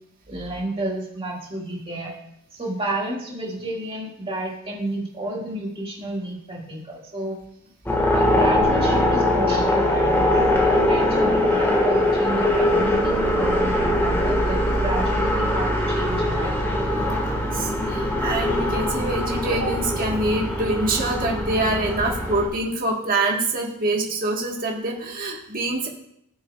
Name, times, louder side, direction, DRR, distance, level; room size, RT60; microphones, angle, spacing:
voice 1, 0.3-2.1 2.5-7.4 8.1-16.6 19.4-19.5 21.6-21.7, right 1 dB, 25° right, -2 dB, 2.0 m, -31 dB
sound 1, 7.9-22.5, left 1 dB, 10° left, 1.6 m, -22 dB
voice 2, 17.3-25.9, right 2 dB, 40° right, 0 dB, 1.5 m, -25 dB
16.5 x 7.0 x 2.4 m, 0.75 s
head